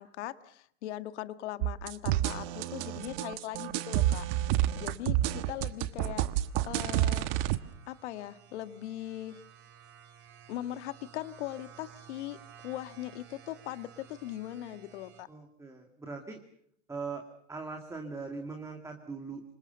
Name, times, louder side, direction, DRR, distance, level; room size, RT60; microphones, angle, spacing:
voice 1, 0.0-4.2 4.8-6.3 6.7-7.3 7.9-9.4 10.5-12.4 12.6-15.3, left 13 dB, 55° left, 12 dB, 1.7 m, -40 dB
sound 1, 1.6-7.6, right 14 dB, 45° right, 1.3 m, -29 dB
sound 2, 5.0-15.2, right 8 dB, 25° right, 3.7 m, -56 dB
voice 2, 15.3-16.4 16.9-17.2 17.5-19.4, right 4 dB, 5° right, 3 dB, 2.2 m, -41 dB
27.5 x 25.0 x 6.9 m, 0.66 s
hypercardioid pair, 140°, 41 cm